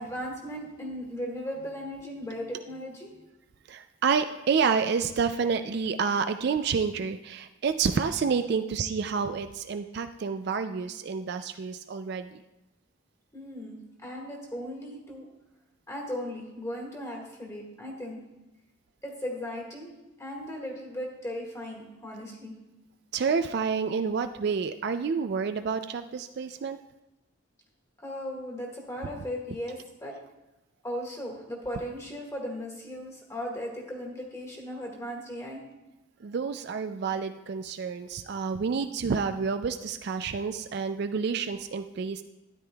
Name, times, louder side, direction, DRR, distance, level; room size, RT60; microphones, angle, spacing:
voice 1, 0.0-3.2 13.3-15.3 15.9-18.2 19.0-19.9 20.2-22.5 28.0-30.1 30.8-35.6, equal, 15° left, -1 dB, 1.7 m, -37 dB
voice 2, 3.7-12.4 23.1-26.8 36.2-42.2, right 5 dB, 50° right, 8 dB, 0.3 m, -29 dB
13.0 x 10.5 x 2.3 m, 0.98 s
head